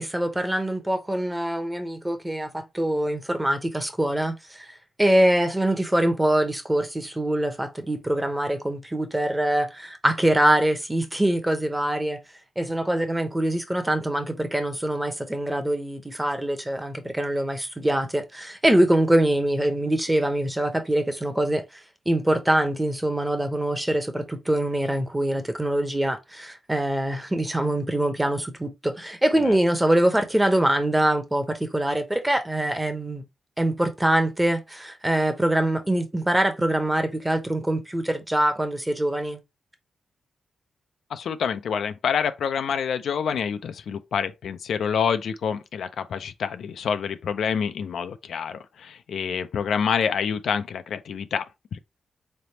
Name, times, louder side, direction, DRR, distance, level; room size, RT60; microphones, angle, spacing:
voice 1, 0.0-12.2 12.6-33.2 33.6-39.4, right 1 dB, 10° right, 0.8 m, -24 dB
voice 2, 41.1-51.8, left 7 dB, 80° left, 0.4 m, -27 dB
3.9 x 3.3 x 2.8 m
cardioid pair, 95°, 0 cm